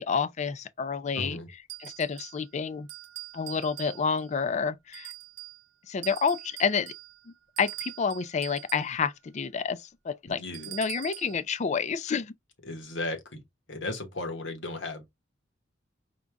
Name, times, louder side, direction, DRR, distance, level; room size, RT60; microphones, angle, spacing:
voice 1, 0.0-1.4 1.8-2.9 3.3-5.1 5.9-6.9 7.3-10.4 10.7-12.3, left 6 dB, 40° left, 0.4 m, -29 dB
voice 2, 1.2-1.5 10.3-10.7 12.6-13.4 13.7-15.0, left 2 dB, 80° left, 1.3 m, -35 dB
sound 1, 1.7-2.5 2.9-4.3 4.9-5.6 6.0-9.0 10.5-11.4, right 19 dB, 90° right, 0.6 m, -43 dB
5.1 x 2.4 x 3.4 m
head